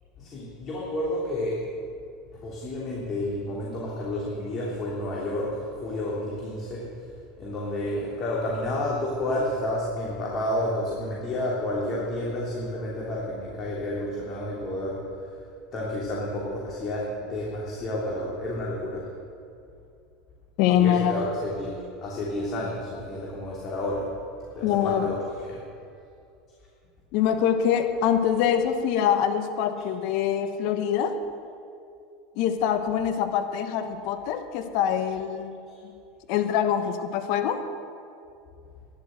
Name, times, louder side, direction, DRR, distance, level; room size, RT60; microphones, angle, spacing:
voice 1, 0.2-1.7 2.3-7.1 7.4-19.1 20.7-24.1 24.4-25.8, left 1 dB, 40° left, -4 dB, 3.2 m, -31 dB
voice 2, 20.6-21.3 24.6-25.1 27.1-31.2 32.4-35.6 36.3-37.6, left 9 dB, 60° left, 7 dB, 1.2 m, -24 dB
12.0 x 11.0 x 7.8 m, 2.5 s
hypercardioid pair, 85°, 0 cm